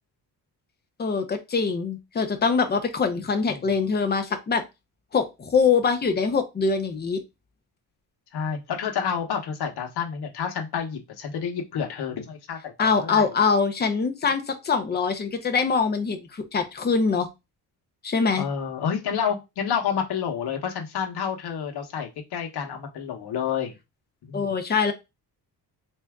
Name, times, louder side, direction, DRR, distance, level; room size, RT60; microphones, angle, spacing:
voice 1, 1.0-4.6 5.1-7.2 12.8-17.3 18.0-18.4 24.3-24.9, left 5 dB, 25° left, 6 dB, 0.6 m, -23 dB
voice 2, 8.3-13.3 18.4-23.8 24.2-24.5, left 7 dB, 70° left, 3 dB, 1.1 m, -29 dB
3.4 x 2.7 x 3.5 m, 0.23 s
cardioid pair, 135°, 40 cm